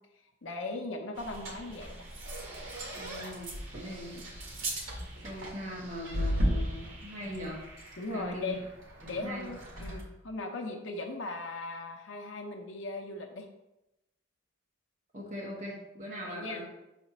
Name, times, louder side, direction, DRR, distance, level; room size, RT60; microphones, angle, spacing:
voice 1, 0.4-2.1 3.8-3.9 8.0-8.6 9.1-13.5 16.3-16.6, left 2 dB, 75° left, 3 dB, 0.7 m, -38 dB
sound 1, 1.2-10.0, equal, 75° right, 1.6 m, -36 dB
voice 2, 3.0-4.3 5.2-7.6 8.1-8.6 9.0-9.5 15.1-16.7, equal, 35° right, -3 dB, 1.1 m, -40 dB
5.9 x 4.3 x 4.2 m, 0.92 s
head